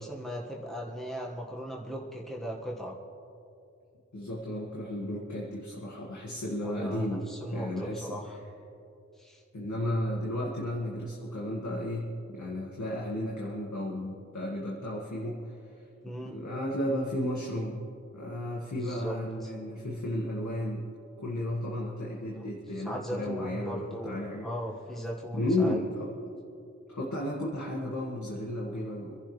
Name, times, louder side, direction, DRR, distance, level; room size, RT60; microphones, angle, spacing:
voice 1, 0.0-3.0 6.6-8.4 9.2-9.4 16.0-16.4 18.8-19.1 19.4-19.5 22.3-22.4 22.7-25.8, equal, ahead, -3 dB, 1.6 m, -38 dB
voice 2, 4.1-7.3 7.5-8.1 9.5-15.8 16.2-17.8 18.1-20.8 21.2-24.5 25.3-26.1 26.9-29.2, left 1 dB, 75° left, -3 dB, 1.9 m, -33 dB
25.5 x 11.5 x 3.3 m, 2.6 s
wide cardioid pair, 75°, 30 cm